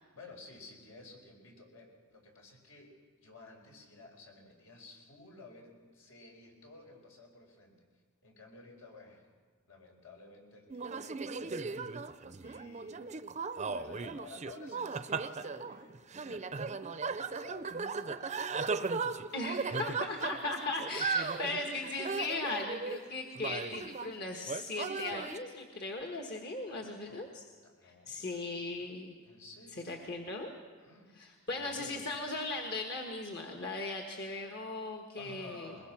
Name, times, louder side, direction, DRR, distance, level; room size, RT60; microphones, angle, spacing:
voice 1, 0.1-2.9 3.2-7.8 8.2-9.3 9.6-11.8 12.4-13.0 13.6-20.2 21.3-22.2 23.1-23.2 26.7-27.3 27.6-30.0 30.8-31.1 31.5-32.0 35.1-35.9, left 3 dB, 80° left, 1 dB, 4.9 m, -54 dB
sound 1, 10.7-24.1 24.5-25.4, right 4 dB, 35° right, 0.6 m, -37 dB
voice 2, 19.3-27.4 27.8-29.1 29.8-30.5 31.2-35.7, left 2 dB, 50° left, 2 dB, 1.5 m, -38 dB
21.5 x 21.0 x 5.9 m, 1.5 s
head